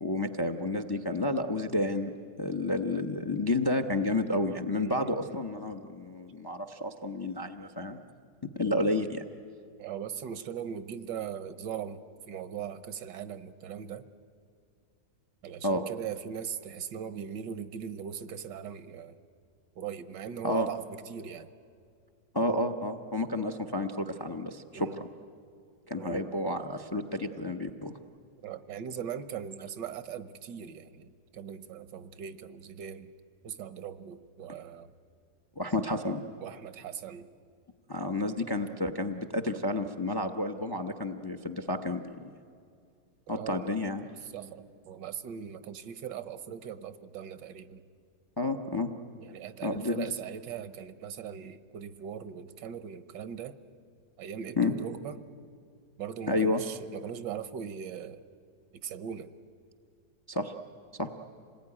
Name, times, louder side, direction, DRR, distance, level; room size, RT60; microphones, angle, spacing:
voice 1, 0.0-2.1 2.4-8.0 8.6-9.2 15.6-15.9 20.4-20.7 22.3-24.9 25.9-27.9 35.6-36.2 37.9-42.3 43.3-44.1 48.4-48.9 49.6-50.1 54.6-54.7 56.3-56.6 60.3-60.5 61.0-61.1, left 2 dB, 40° left, 7 dB, 0.3 m, -30 dB
voice 2, 4.7-5.2 9.8-14.1 15.4-19.2 19.7-21.5 24.7-25.0 25.9-26.3 28.4-33.1 33.4-34.9 36.4-37.3 43.3-43.7 44.2-47.8 49.2-53.6 54.2-55.2 56.0-58.2 58.7-59.3, right 8 dB, 75° right, 13 dB, 1.5 m, -40 dB
27.0 x 19.5 x 9.8 m, 2.3 s
omnidirectional pair, 1.9 m